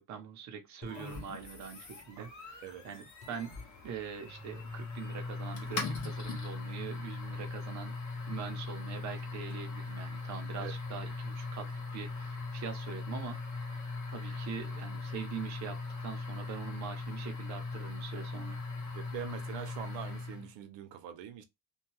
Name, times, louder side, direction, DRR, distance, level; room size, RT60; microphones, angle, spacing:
voice 1, 0.0-3.5 3.8-7.9 8.3-13.4 14.1-18.6, right 7 dB, 40° right, 0.6 m, -43 dB
sound 1, 0.8-2.7 3.2-5.1 5.6-7.3, left 3 dB, 15° left, 0.3 m, -53 dB
sound 2, 0.9-20.5, left 3 dB, 40° left, 1.1 m, -40 dB
voice 2, 18.9-21.4, right 10 dB, 90° right, 0.7 m, -43 dB
2.7 x 2.3 x 2.9 m
cardioid pair, 165°, 43 cm